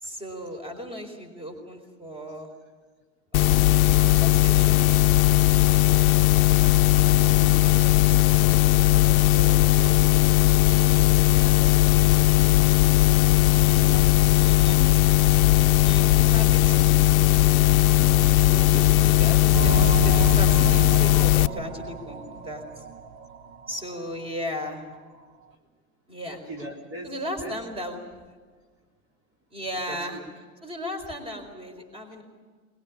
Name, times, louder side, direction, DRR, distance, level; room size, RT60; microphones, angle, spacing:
voice 1, 0.0-2.5 3.3-4.9 13.5-14.0 14.3-14.8 15.8-16.9 18.4-22.8 23.7-24.8 26.1-26.4 27.0-28.0 29.5-30.2 30.6-32.2, equal, 15° right, 6 dB, 4.5 m, -36 dB
sound 1, 3.3-21.5, left 16 dB, 75° left, 0.7 m, -18 dB
voice 2, 6.6-7.9 8.2-10.1 10.4-11.0 11.4-12.3 13.0-13.2 13.7-14.8 16.2-16.3 18.0-18.9 26.3-27.1 27.4-27.6 29.9-30.2 32.1-32.2, right 1 dB, 30° right, 0 dB, 4.0 m, -42 dB
sound 2, 19.5-23.8 24.1-24.2 24.8-24.9, right 8 dB, 45° right, 1.5 m, -31 dB
21.0 x 21.0 x 8.6 m, 1.5 s
hypercardioid pair, 115°, 42 cm